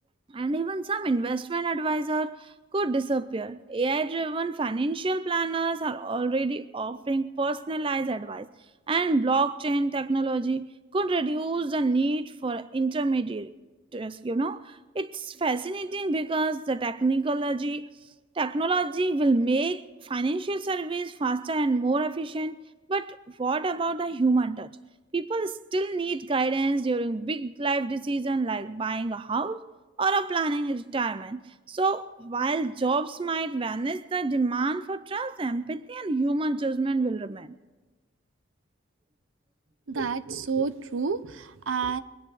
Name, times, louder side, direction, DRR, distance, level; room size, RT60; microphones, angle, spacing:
voice 1, 0.3-8.5 8.9-13.5 13.9-17.9 18.4-22.6 22.9-24.7 25.1-29.7 30.0-37.5, right 3 dB, 25° right, 0.4 m, -27 dB
voice 2, 39.9-42.0, right 5 dB, 80° right, 0.7 m, -29 dB
23.5 x 10.0 x 4.9 m
head